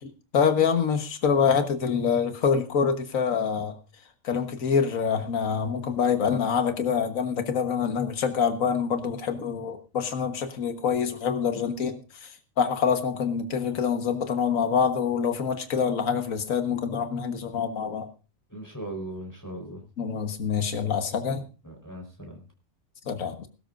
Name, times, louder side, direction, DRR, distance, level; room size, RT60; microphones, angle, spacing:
voice 1, 0.3-3.7 4.2-12.3 12.6-18.1 20.0-21.4 23.1-23.5, left 6 dB, 70° left, 6 dB, 1.8 m, -26 dB
voice 2, 18.5-19.8 21.6-22.4, right 1 dB, 15° left, 2 dB, 4.3 m, -38 dB
21.0 x 12.5 x 2.6 m, 0.33 s
omnidirectional pair, 1.4 m